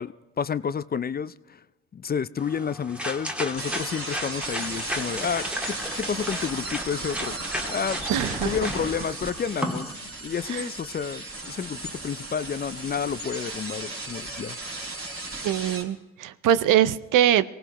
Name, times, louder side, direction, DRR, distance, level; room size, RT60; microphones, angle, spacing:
voice 1, 0.0-1.6 1.9-7.4 7.7-8.0 8.4-9.9 10.2-14.6, left 7 dB, 30° left, 16 dB, 0.4 m, -30 dB
sound 1, 2.4-9.9, equal, 5° right, 1.6 m, -34 dB
sound 2, 3.6-15.8, right 2 dB, 45° right, 4.0 m, -35 dB
voice 2, 8.1-8.5 10.5-10.7 15.4-17.4, right 11 dB, 75° right, 15 dB, 0.7 m, -22 dB
23.0 x 17.5 x 3.0 m, 1.1 s
supercardioid pair, 65°, 32 cm